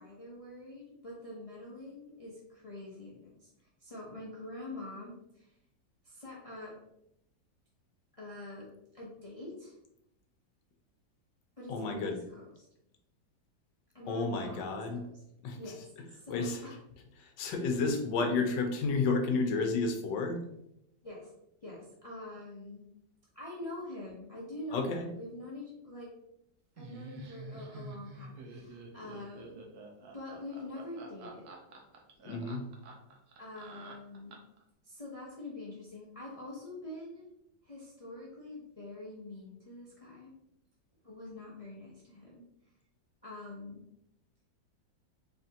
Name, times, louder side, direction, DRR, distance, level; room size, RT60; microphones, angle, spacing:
voice 1, 0.0-5.5 6.0-6.7 8.2-8.7 8.9-9.7 11.6-12.7 13.9-15.2 15.6-16.8 17.6-17.8 21.0-21.3 21.6-22.8 23.3-26.1 26.8-29.6 30.1-31.5 33.4-34.4 34.8-37.2 37.6-40.3 41.0-42.4 43.2-43.8, left 2 dB, 50° left, -5 dB, 0.4 m, -45 dB
voice 2, 11.7-12.2 14.1-15.0 15.4-15.6 16.3-16.6 17.2-20.4 24.7-25.1 32.2-32.6, left 3 dB, 80° left, 5 dB, 1.3 m, -31 dB
Laughter, 26.8-34.6, right 3 dB, 65° right, 1.1 m, -48 dB
4.2 x 3.4 x 2.7 m, 0.80 s
omnidirectional pair, 2.0 m